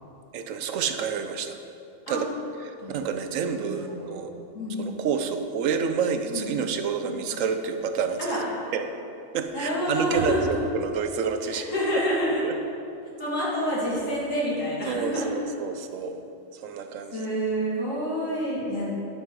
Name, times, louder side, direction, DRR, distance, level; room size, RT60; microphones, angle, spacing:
voice 1, 0.3-1.6 2.1-2.3 2.6-4.3 4.8-8.4 8.7-8.8 9.3-11.6 12.4-12.5 14.9-16.2 16.5-17.2, right 6 dB, 80° right, 7 dB, 1.1 m, -29 dB
voice 2, 3.5-4.1 4.5-4.9 6.3-6.5 7.0-7.3 8.2-8.4 9.5-10.6 11.5-12.4 13.2-15.3 17.1-18.8, equal, 80° left, -7 dB, 2.8 m, -28 dB
8.9 x 7.7 x 4.8 m, 2.7 s
omnidirectional pair, 1.3 m